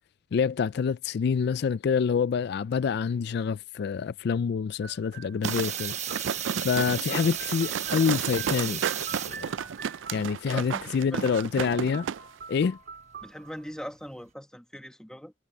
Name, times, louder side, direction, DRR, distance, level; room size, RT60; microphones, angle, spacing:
voice 1, 0.3-6.0 6.6-8.8 9.2-9.5 10.1-12.1 12.5-12.8, left 6 dB, 55° left, 0.3 m, -27 dB
sound 1, 4.8-6.6 6.9-10.5 11.4-11.5 11.7-13.8, right 6 dB, 55° right, 3.9 m, -45 dB
sound 2, 5.4-14.3, right 9 dB, 35° right, 1.0 m, -35 dB
sound 3, 5.4-12.2 12.5-12.6, right 7 dB, 75° right, 0.4 m, -33 dB
voice 2, 10.5-11.3 13.2-15.3, equal, 5° left, 1.1 m, -41 dB
head